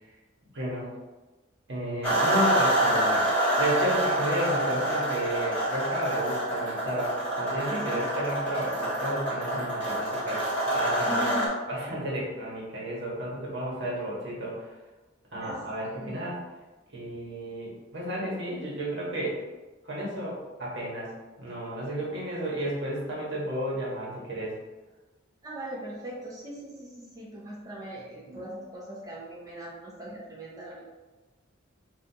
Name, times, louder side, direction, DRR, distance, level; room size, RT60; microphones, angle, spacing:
voice 1, 0.5-0.9 1.7-3.2 3.6-10.5 10.7-11.4 11.7-14.7 15.3-16.4 16.9-19.4 19.8-21.1 21.4-24.6 28.3-28.4, right 1 dB, 65° right, -5 dB, 1.4 m, -32 dB
sound 1, 2.0-11.5, right 1 dB, 10° left, 1.5 m, -27 dB
voice 2, 7.7-8.1 11.1-11.5 15.4-15.6 16.0-16.3 25.4-30.8, equal, 20° right, -6 dB, 0.7 m, -39 dB
5.5 x 2.5 x 2.8 m, 1.2 s
head